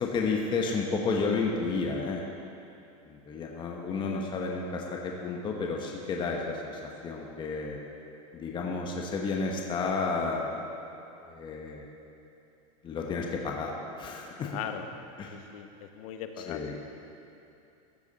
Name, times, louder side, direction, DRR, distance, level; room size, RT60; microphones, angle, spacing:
voice 1, 0.0-2.2 3.0-7.8 8.3-10.6 11.2-11.8 12.8-13.7 14.0-14.5 15.2-15.3 16.5-16.8, left 4 dB, 25° left, 0 dB, 1.0 m, -31 dB
voice 2, 14.4-14.9 15.3-16.6, left 9 dB, 75° left, 7 dB, 0.9 m, -39 dB
14.5 x 8.2 x 4.1 m, 2.7 s
supercardioid pair, 130°, 18 cm